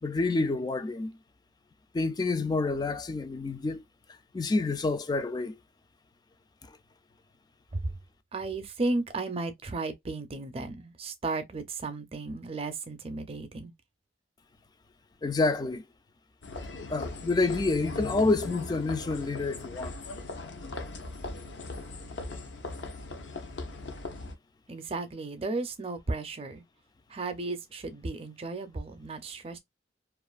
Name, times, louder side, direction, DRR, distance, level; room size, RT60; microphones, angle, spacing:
voice 1, 0.0-1.2 1.9-3.8 4.3-5.6 15.2-15.8 16.9-19.9, left 3 dB, 25° left, 0.3 m, -28 dB
voice 2, 8.3-13.7 24.7-26.6 27.1-29.6, right 3 dB, 35° right, 0.5 m, -34 dB
sound 1, 16.4-24.3, left 2 dB, 90° left, 0.7 m, -39 dB
2.5 x 2.4 x 2.3 m
head